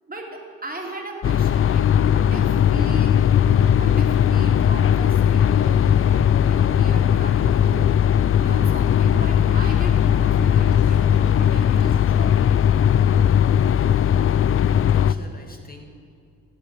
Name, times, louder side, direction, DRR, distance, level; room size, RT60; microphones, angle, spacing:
voice 1, 0.1-3.2 3.7-8.1 8.4-12.6, right 2 dB, 25° right, 0 dB, 2.7 m, -37 dB
sound 1, 1.2-15.1, left 9 dB, 40° left, 0.4 m, -18 dB
sound 2, 3.5-11.5, right 3 dB, 55° right, 2.6 m, -44 dB
voice 2, 14.6-15.8, left 1 dB, 25° left, 2 dB, 2.2 m, -44 dB
15.5 x 7.8 x 5.7 m, 2.4 s
supercardioid pair, 55°, 33 cm